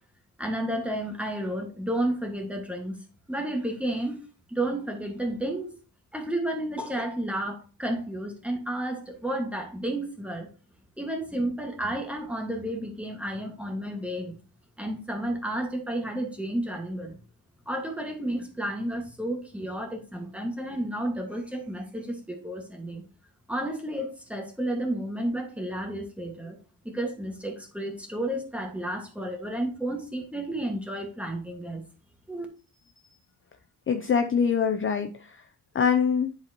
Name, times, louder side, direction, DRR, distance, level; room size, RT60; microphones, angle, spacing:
voice 1, 0.4-2.9 3.3-4.2 4.5-5.7 6.1-10.5 11.0-14.4 14.8-17.2 17.7-23.0 23.5-26.6 26.8-31.8 32.3-32.5, right 1 dB, 5° right, 2 dB, 1.6 m, -31 dB
voice 2, 33.9-35.4 35.7-36.3, left 6 dB, 35° left, 6 dB, 0.5 m, -24 dB
10.0 x 4.3 x 2.9 m, 0.35 s
cardioid pair, 115°, 38 cm